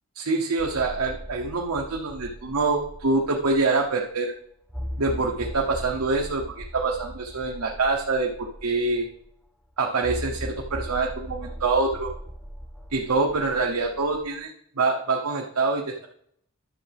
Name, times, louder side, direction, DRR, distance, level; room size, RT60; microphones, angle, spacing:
voice 1, 0.1-4.3 5.0-9.1 9.8-12.1 12.9-14.5 14.8-16.1, right 3 dB, 85° right, 1 dB, 0.9 m, -25 dB
sound 1, 0.6-3.8 4.2-4.3 4.7-9.2 10.0-14.3, equal, 5° left, 0.8 m, -38 dB
11.0 x 6.9 x 3.5 m, 0.68 s
head